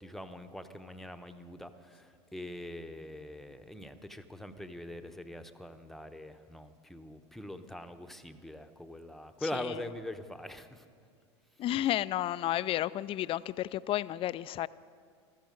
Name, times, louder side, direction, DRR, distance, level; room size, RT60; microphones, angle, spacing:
voice 1, 0.0-10.8, left 1 dB, ahead, 0.9 m, -43 dB
voice 2, 11.6-14.7, left 13 dB, 40° left, 0.4 m, -32 dB
15.5 x 13.5 x 5.2 m
hypercardioid pair, 85°, 15 cm